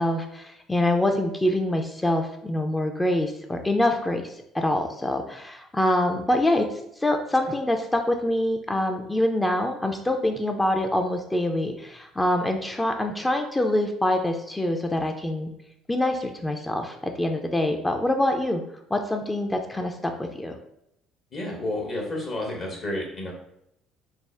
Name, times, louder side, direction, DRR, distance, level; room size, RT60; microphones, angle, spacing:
voice 1, 0.0-6.7 7.0-15.5 15.9-18.6 18.9-20.5, left 1 dB, 15° left, 4 dB, 0.4 m, -25 dB
voice 2, 21.3-23.3, left 1 dB, 45° left, -1 dB, 0.7 m, -30 dB
3.5 x 2.1 x 3.2 m, 0.77 s
figure-of-eight pair, 55°, 0 cm